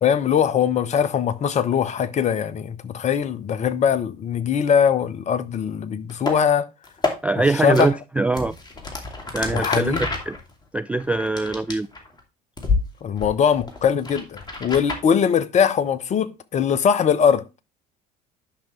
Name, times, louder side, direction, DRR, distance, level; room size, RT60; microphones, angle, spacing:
voice 1, 0.0-6.7 7.4-7.9 9.5-10.0 13.0-17.4, left 7 dB, 35° left, 0.9 m, -21 dB
sound 1, 6.1-6.4 6.8-7.1 7.7-7.9 8.3-12.2 12.6-12.8 13.2-15.0, left 3 dB, 20° left, 2.6 m, -28 dB
voice 2, 7.2-8.5 9.3-9.9 10.3-10.4 10.7-11.9, right 2 dB, 5° right, 0.3 m, -22 dB
10.5 x 6.0 x 3.2 m
figure-of-eight pair, 60°, 19 cm